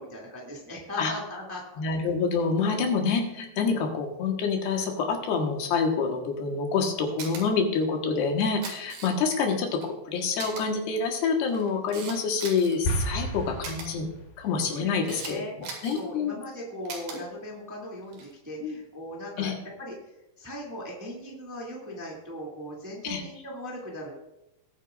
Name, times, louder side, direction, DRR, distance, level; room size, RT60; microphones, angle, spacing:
voice 1, 0.0-1.8 14.7-15.5 15.9-19.5 19.8-19.9 20.4-24.1, equal, 5° right, -3 dB, 1.5 m, -38 dB
voice 2, 1.8-14.1 14.4-16.4 17.1-17.2 18.6-18.8 19.4-19.6 23.0-23.2, left 5 dB, 85° left, 2 dB, 3.5 m, -27 dB
Camera, 7.2-7.4 8.4-9.4 9.8-9.9 10.4-10.6 11.3-12.8 13.6-13.9 14.6-15.3 15.6-16.0 16.9-17.2 18.0-18.3, right 5 dB, 75° right, 4.0 m, -39 dB
sound 1, 12.8-14.5, equal, 65° left, 2.9 m, -31 dB
19.5 x 9.2 x 2.6 m, 0.88 s
omnidirectional pair, 4.6 m